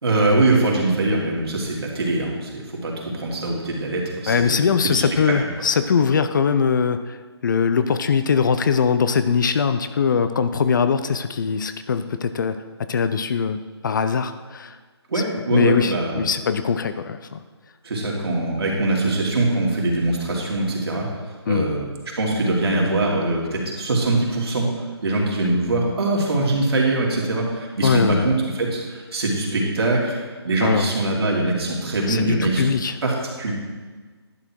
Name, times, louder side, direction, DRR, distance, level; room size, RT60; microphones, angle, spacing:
voice 1, 0.0-4.5 4.8-5.0 15.1-16.2 17.8-21.1 21.5-21.8 22.1-32.6 33.0-33.5, right 2 dB, 60° right, -2 dB, 2.9 m, -22 dB
voice 2, 4.3-12.6 12.9-13.6 13.8-14.8 15.1-15.2 15.5-17.4 21.5-21.7 27.8-28.2 30.6-30.9 32.1-33.0, left 6 dB, 45° left, 10 dB, 0.6 m, -21 dB
11.0 x 6.7 x 4.6 m, 1.4 s
figure-of-eight pair, 150°, 14 cm